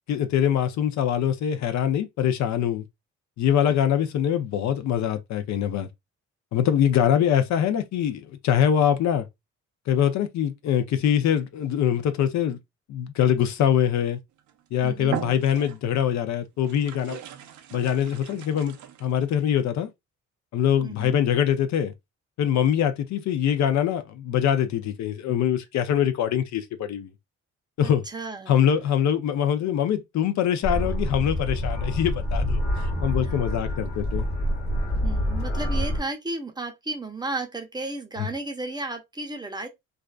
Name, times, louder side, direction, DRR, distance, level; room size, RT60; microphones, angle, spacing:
voice 1, 0.1-2.8 3.4-5.9 6.5-9.3 9.9-12.6 12.9-14.2 14.7-17.2 17.7-18.8 19.0-19.9 20.5-21.9 22.4-27.1 27.8-28.0 28.5-34.3 38.2-38.3, left 9 dB, 65° left, 0.5 m, -23 dB
sound 1, 14.4-14.6 15.0-16.0 16.6-19.4, right 11 dB, 75° right, 0.5 m, -38 dB
voice 2, 14.8-15.2 20.8-21.2 28.1-28.6 33.2-33.3 35.0-39.7, right 2 dB, 15° right, 0.6 m, -33 dB
sound 2, 30.6-36.0, equal, 35° left, 1.2 m, -27 dB
2.4 x 2.2 x 2.3 m
cardioid pair, 90°, 30 cm